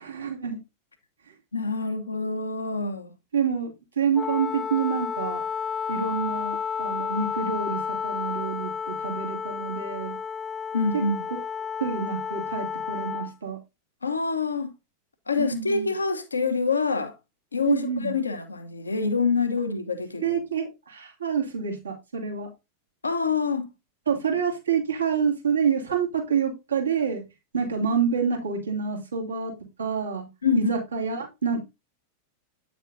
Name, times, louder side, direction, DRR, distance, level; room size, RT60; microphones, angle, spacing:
voice 1, 0.0-0.6 3.3-5.4 5.9-10.1 10.9-11.0 11.8-13.6 15.4-15.9 17.6-18.1 20.2-22.5 24.1-27.2 27.5-29.5 29.8-30.3 30.6-31.6, right 6 dB, 75° right, 2.6 m, -27 dB
voice 2, 1.5-3.1 10.7-11.3 14.0-14.7 15.3-17.1 17.5-20.4 23.0-23.7 30.4-30.7, left 4 dB, 75° left, 1.1 m, -26 dB
Wind instrument woodwind instrument, 4.1-13.3, left 6 dB, 20° left, 0.4 m, -31 dB
9.1 x 6.9 x 2.7 m
figure-of-eight pair, 90°, 0 cm